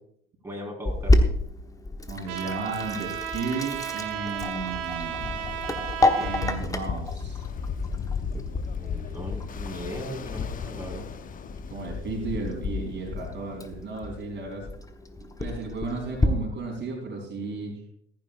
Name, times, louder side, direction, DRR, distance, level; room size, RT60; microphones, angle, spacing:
voice 1, 0.4-1.3 8.6-11.1, equal, 10° right, -1 dB, 4.2 m, -38 dB
Sink (filling or washing), 0.9-16.3, left 2 dB, 10° left, 1.2 m, -30 dB
voice 2, 2.1-5.5 6.1-7.4 11.7-14.7 15.2-17.8, right 3 dB, 35° right, 0 dB, 3.7 m, -34 dB
Trumpet, 2.3-6.6, right 10 dB, 55° right, 2.2 m, -34 dB
Ocean, 4.1-14.0, left 6 dB, 25° left, 0.9 m, -35 dB
15.0 x 15.0 x 2.5 m, 0.68 s
figure-of-eight pair, 65°, 31 cm